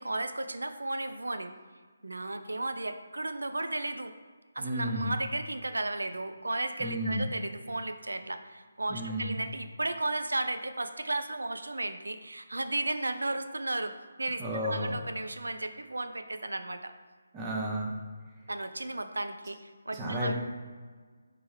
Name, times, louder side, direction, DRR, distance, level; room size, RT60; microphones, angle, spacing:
voice 1, 0.0-1.5 2.0-4.1 4.6-16.9 18.5-20.3, right 2 dB, 85° right, 8 dB, 0.3 m, -34 dB
voice 2, 4.6-5.1 6.8-7.3 8.9-9.4 14.4-15.0 17.3-17.9 19.9-20.3, equal, 20° right, -2 dB, 0.7 m, -32 dB
3.3 x 3.2 x 3.1 m, 1.5 s
figure-of-eight pair, 155°, 0 cm